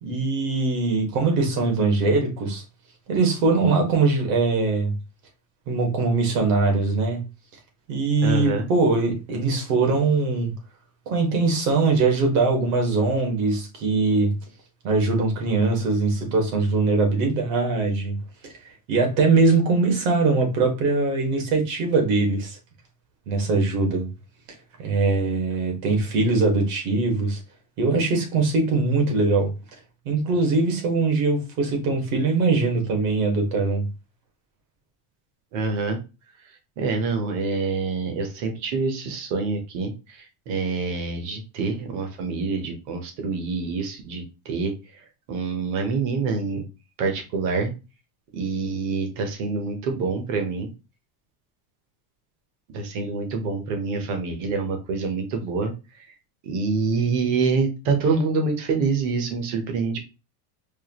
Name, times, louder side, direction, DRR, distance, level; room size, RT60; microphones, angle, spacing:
voice 1, 0.0-2.6 3.1-5.0 5.7-7.2 7.9-10.5 11.0-14.4 14.8-18.2 18.4-18.5 18.9-22.6 23.3-24.1 24.8-27.4 27.8-29.5 30.0-33.9, right 3 dB, 60° right, 1.6 m, -22 dB
voice 2, 8.2-8.7 35.5-36.0 36.8-44.7 45.3-46.6 47.0-47.7 48.3-50.7 52.7-56.1 56.4-60.0, right 4 dB, 40° right, 0.9 m, -26 dB
4.7 x 2.4 x 2.9 m
cardioid pair, 180°, 48 cm